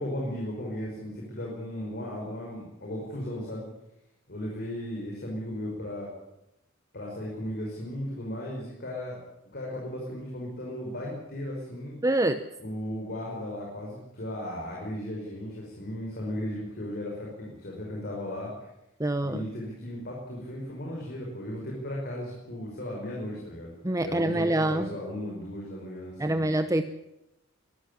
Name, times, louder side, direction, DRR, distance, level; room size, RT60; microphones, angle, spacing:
voice 1, 0.0-3.7 4.3-6.1 6.9-9.2 9.5-11.9 12.6-18.5 19.2-23.7 24.0-26.5, left 1 dB, 50° left, -2 dB, 5.5 m, -36 dB
voice 2, 12.0-12.4 19.0-19.4 23.8-24.9 26.2-26.8, right 1 dB, 15° right, 9 dB, 0.8 m, -25 dB
23.0 x 14.0 x 10.0 m, 0.88 s
head